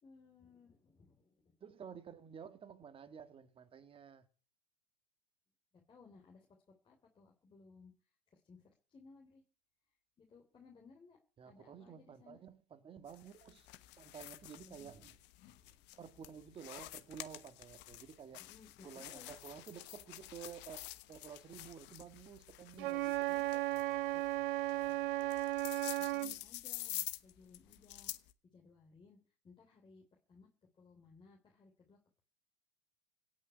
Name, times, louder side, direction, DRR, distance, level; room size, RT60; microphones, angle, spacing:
voice 1, 0.0-1.6 5.9-6.5 6.8-7.9 8.3-9.4 10.2-11.2 11.4-12.4 14.6-15.0 18.4-19.3 22.7-23.5 26.0-28.1 28.4-29.2 29.4-30.5 30.8-32.2, left 4 dB, 15° left, 3.4 m, -61 dB
voice 2, 1.6-4.3 11.4-13.7 14.0-15.2 15.5-18.4 18.8-25.4, right 7 dB, 20° right, 1.8 m, -53 dB
sound 1, 13.1-28.3, left 17 dB, 35° left, 1.2 m, -49 dB
Wind instrument woodwind instrument, 22.8-26.4, right 17 dB, 60° right, 0.6 m, -35 dB
17.0 x 6.5 x 9.6 m
supercardioid pair, 135°, 30 cm